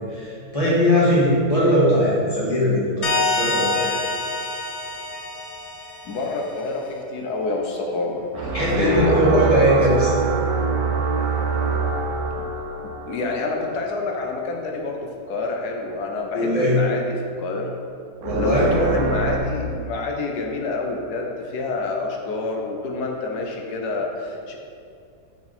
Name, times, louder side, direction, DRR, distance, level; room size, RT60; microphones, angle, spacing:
voice 1, 0.1-3.9 8.5-10.2 16.3-16.8 18.2-18.7, equal, 20° left, -8 dB, 2.0 m, -20 dB
sound 1, 3.0-6.4, left 2 dB, 55° left, 0.9 m, -26 dB
voice 2, 6.0-9.8 12.4-12.5 13.1-17.0 17.4-17.7 18.4-24.6, left 3 dB, 85° left, 1 dB, 1.4 m, -27 dB
sound 2, 8.3-14.1 18.2-19.4, right 4 dB, 75° right, 1.2 m, -25 dB
6.3 x 6.1 x 4.3 m, 2.4 s
omnidirectional pair, 1.6 m